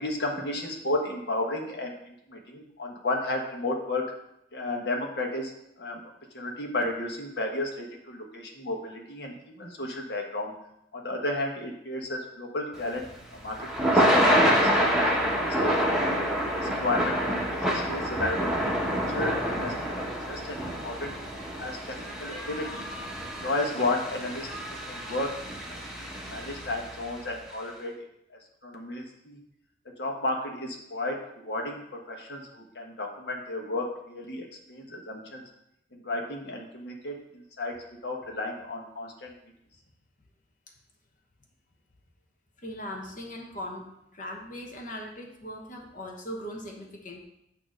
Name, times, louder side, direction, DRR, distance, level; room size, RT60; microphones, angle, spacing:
voice 1, 0.0-4.0 4.5-5.5 5.8-6.0 6.3-10.5 10.9-15.9 16.4-21.1 21.6-22.9 23.4-24.5 24.9-25.3 25.7-27.9 28.3-29.4 30.0-35.4 35.9-39.3, left 2 dB, 65° left, 1 dB, 1.3 m, -33 dB
Thunder / Rain, 12.8-27.1, equal, 5° right, 0.9 m, -27 dB
voice 2, 42.6-43.9 44.1-47.2, equal, 45° left, 0 dB, 1.1 m, -39 dB
8.8 x 3.0 x 6.2 m, 0.80 s
head